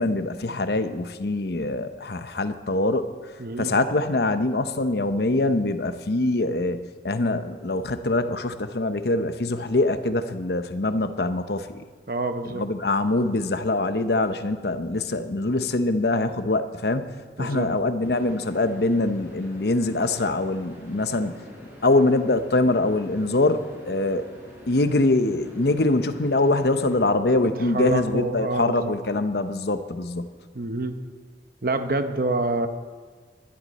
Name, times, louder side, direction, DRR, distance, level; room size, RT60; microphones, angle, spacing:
voice 1, 0.0-11.8 12.4-17.1 17.4-21.4 21.8-24.3 24.7-30.3, left 2 dB, 65° left, 9 dB, 0.8 m, -24 dB
voice 2, 3.4-3.7 12.1-12.6 17.4-17.7 27.7-28.9 30.5-31.0 31.6-32.7, right 2 dB, 50° right, 8 dB, 0.9 m, -27 dB
sound 1, 18.0-27.0, equal, 15° right, 3.9 m, -45 dB
20.5 x 11.5 x 4.2 m, 1.5 s
head